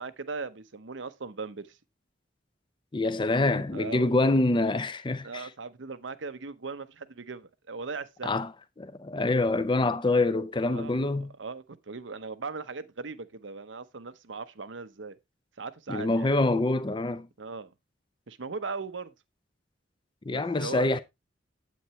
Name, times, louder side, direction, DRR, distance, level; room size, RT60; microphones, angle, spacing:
voice 1, 0.0-1.8 3.7-4.4 5.2-8.3 10.7-15.2 15.6-16.3 17.4-17.7 18.3-19.1 20.3-21.0, right 4 dB, 80° right, 0.9 m, -39 dB
voice 2, 2.9-5.5 8.2-8.5 8.8-11.3 15.9-17.3 20.3-21.0, left 2 dB, 25° left, 0.6 m, -26 dB
8.6 x 8.6 x 3.1 m
head